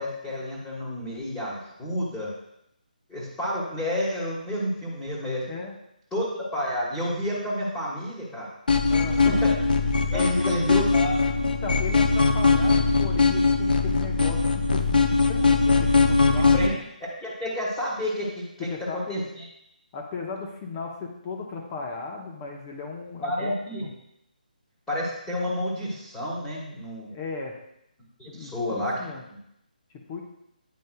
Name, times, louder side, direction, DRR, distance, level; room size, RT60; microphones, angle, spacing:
voice 1, 0.0-2.3 3.1-5.4 6.1-8.5 9.2-9.5 10.1-11.2 16.3-16.7 17.0-18.7 19.1-19.4 23.2-23.8 24.9-27.1 28.2-28.9 29.3-29.4, left 1 dB, 5° left, -10 dB, 1.4 m, -30 dB
sound 1, 8.7-16.7, left 4 dB, 70° left, 0.8 m, -21 dB
voice 2, 8.9-9.4 10.1-10.7 11.4-16.8 18.6-19.2 19.9-23.9 27.1-27.6 28.3-29.2 30.1-30.2, left 4 dB, 25° left, 0 dB, 0.9 m, -36 dB
9.5 x 5.2 x 2.3 m, 0.78 s
figure-of-eight pair, 155°, 5 cm